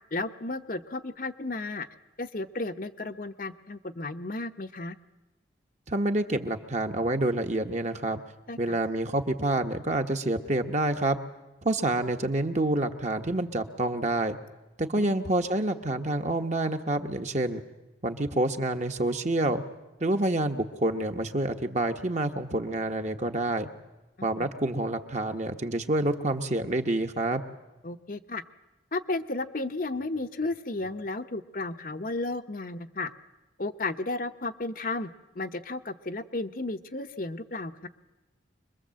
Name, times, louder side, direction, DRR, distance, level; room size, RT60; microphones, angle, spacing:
voice 1, 0.1-1.9 2.2-4.9 8.5-8.7 14.9-15.3 24.2-24.5 27.8-28.4 28.9-33.1 33.6-35.1 35.3-37.9, left 2 dB, 50° left, 7 dB, 0.9 m, -33 dB
voice 2, 5.9-8.2 8.6-11.2 11.6-14.4 14.8-17.6 18.0-19.6 20.0-23.7 24.2-27.4, right 2 dB, 40° right, 6 dB, 1.2 m, -28 dB
25.5 x 21.5 x 7.7 m, 1.1 s
head